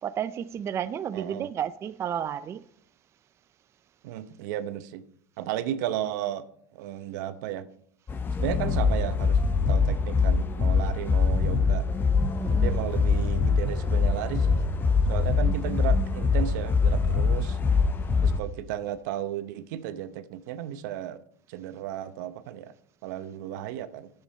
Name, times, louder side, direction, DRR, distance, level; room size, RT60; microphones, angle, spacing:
voice 1, 0.0-2.6 12.4-12.8, right 9 dB, 30° right, 0.4 m, -32 dB
voice 2, 1.1-1.5 4.0-5.0 5.4-6.4 6.7-7.7 8.4-9.4 9.7-11.9 12.5-14.6 15.1-17.6 18.2-21.2 21.5-22.7 23.0-24.1, right 11 dB, 75° right, 0.8 m, -34 dB
sound 1, 8.1-18.4, left 4 dB, 20° left, 0.7 m, -24 dB
10.0 x 7.5 x 5.2 m
supercardioid pair, 125°, 10 cm